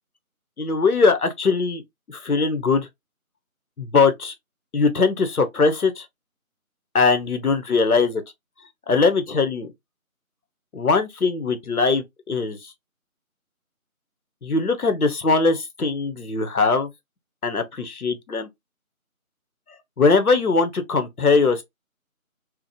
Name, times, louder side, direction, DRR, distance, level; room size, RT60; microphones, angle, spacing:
voice 1, 0.6-1.8 2.1-2.9 3.8-4.3 4.7-6.1 6.9-8.2 8.9-9.7 10.7-12.7 14.4-16.9 17.4-18.5 20.0-21.6, left 4 dB, 90° left, 0.8 m, -21 dB
2.9 x 2.0 x 2.6 m
figure-of-eight pair, 170°, 43 cm